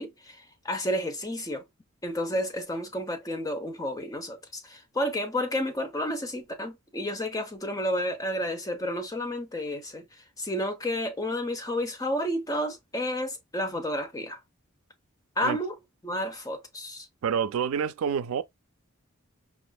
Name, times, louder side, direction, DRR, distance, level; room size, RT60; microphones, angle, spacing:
voice 1, 0.0-1.6 2.0-10.0 10.4-14.4 15.4-15.7 16.0-17.1, left 1 dB, 15° left, 0.7 m, -31 dB
voice 2, 17.2-18.4, right 7 dB, 85° right, 0.4 m, -27 dB
5.1 x 2.4 x 2.3 m
head